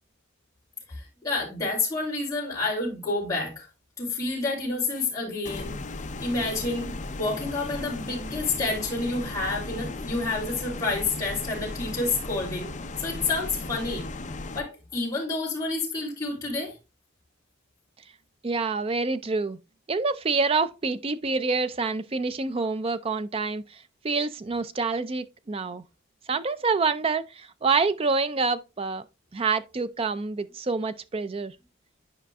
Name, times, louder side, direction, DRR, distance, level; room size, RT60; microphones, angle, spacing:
voice 1, 0.9-3.7 4.0-5.8 6.2-12.7 13.0-14.1 14.5-16.7, left 3 dB, 15° left, 2.8 m, -29 dB
sound 1, 5.4-14.6, left 2 dB, 35° left, 0.6 m, -36 dB
voice 2, 18.4-19.6 19.9-25.8 26.3-29.0 29.3-31.5, right 4 dB, 25° right, 0.4 m, -27 dB
10.0 x 5.1 x 2.3 m
head